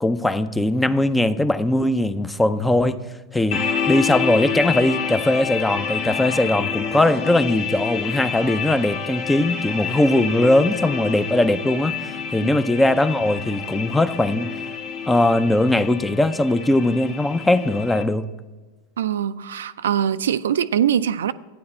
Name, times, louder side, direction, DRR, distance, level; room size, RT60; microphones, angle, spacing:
voice 1, 0.0-3.1 3.3-14.6 15.1-18.3, left 1 dB, 10° left, 0.5 m, -20 dB
sound 1, 3.5-18.0, left 6 dB, 45° left, 1.0 m, -28 dB
voice 2, 19.0-21.3, right 9 dB, 90° right, 0.4 m, -22 dB
12.0 x 9.4 x 4.3 m
hypercardioid pair, 120°, 0 cm